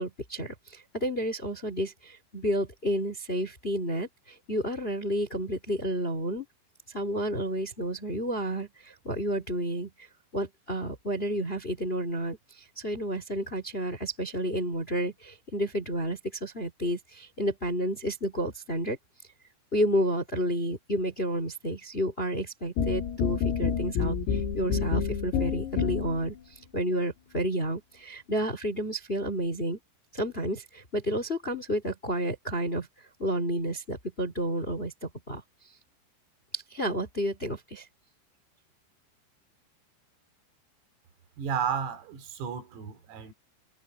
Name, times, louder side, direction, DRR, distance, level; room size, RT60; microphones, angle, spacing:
voice 1, 0.0-4.1 4.5-6.4 6.9-9.9 10.3-12.4 12.8-19.0 19.7-26.3 26.7-29.8 30.1-32.9 33.2-35.4 36.5-37.8, equal, 15° left, 2.1 m, -30 dB
sound 1, 22.8-26.3, left 7 dB, 80° left, 6.4 m, -28 dB
voice 2, 41.4-43.3, right 7 dB, 90° right, 6.3 m, -32 dB
omnidirectional pair, 6.0 m